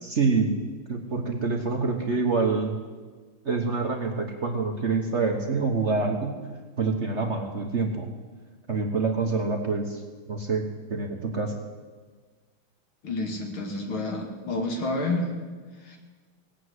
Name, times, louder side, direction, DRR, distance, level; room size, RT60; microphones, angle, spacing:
voice 1, 0.0-0.6 0.9-2.8 3.4-6.5 6.8-8.1 8.7-11.5, right 4 dB, 40° right, 3 dB, 1.2 m, -26 dB
voice 2, 13.0-15.3 15.8-16.0, left 2 dB, 80° left, 2 dB, 3.1 m, -29 dB
18.5 x 8.6 x 8.0 m, 1.4 s
omnidirectional pair, 2.3 m